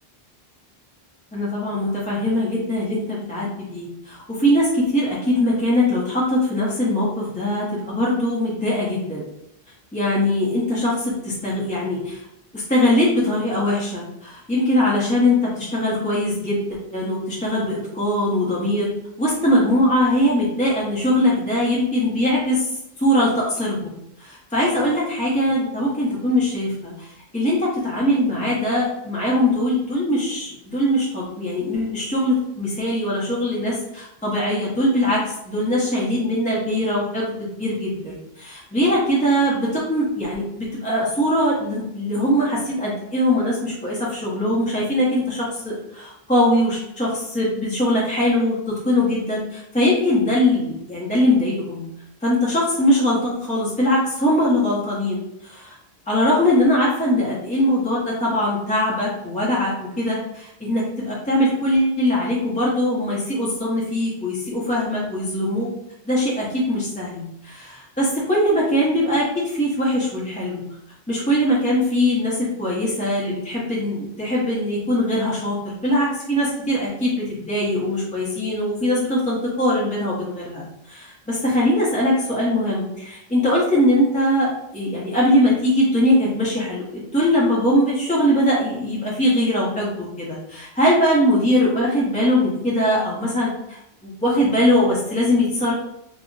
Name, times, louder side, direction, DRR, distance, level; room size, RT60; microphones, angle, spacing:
voice 1, 1.3-9.2 9.9-12.2 12.5-18.9 19.2-23.9 24.2-51.8 52.2-55.7 56.1-65.7 66.1-70.6 71.1-95.7, left 1 dB, 10° left, -7 dB, 0.5 m, -21 dB
2.5 x 2.0 x 3.7 m, 0.82 s
omnidirectional pair, 1.0 m